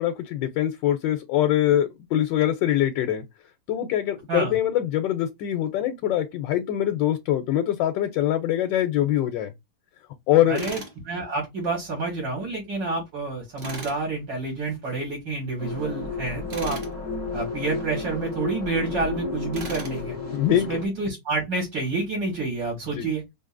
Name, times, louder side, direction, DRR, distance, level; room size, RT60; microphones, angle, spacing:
voice 1, 0.0-3.2 3.7-9.5 10.3-10.7 20.3-20.7 22.9-23.1, left 12 dB, 90° left, 1.3 m, -23 dB
voice 2, 10.5-10.8 11.0-16.8 17.3-20.2 20.7-23.2, right 3 dB, 90° right, 2.5 m, -28 dB
Tools, 10.6-11.0 13.6-14.0 16.5-16.9 19.5-20.0, right 1 dB, 35° right, 1.0 m, -36 dB
sound 1, 15.6-20.9, left 4 dB, 10° right, 1.2 m, -32 dB
4.5 x 2.6 x 2.4 m
omnidirectional pair, 1.9 m